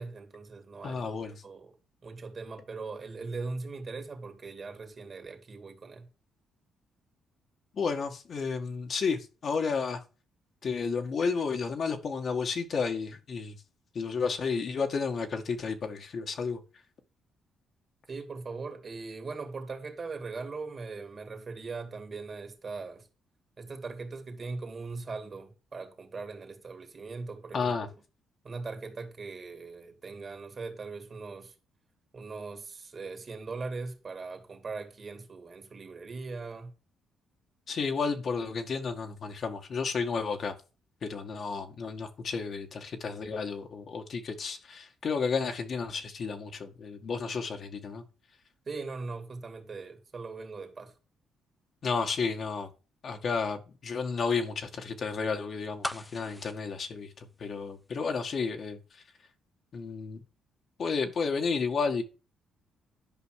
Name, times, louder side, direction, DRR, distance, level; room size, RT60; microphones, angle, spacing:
voice 1, 0.0-1.2 1.4-1.7 2.0-6.1 18.1-23.1 23.6-27.7 28.4-31.5 32.1-36.7 48.7-50.9, right 4 dB, 40° right, 2.5 m, -40 dB
voice 2, 0.8-1.4 7.7-10.0 10.6-13.6 13.9-16.6 27.5-27.9 37.7-40.5 41.0-48.1 51.8-52.7 53.0-59.0 59.7-60.2 60.8-62.0, left 5 dB, 55° left, 1.9 m, -32 dB
sound 1, 55.8-57.9 58.2-58.3, left 1 dB, 10° left, 0.8 m, -39 dB
11.0 x 5.3 x 6.5 m
cardioid pair, 90°, 0 cm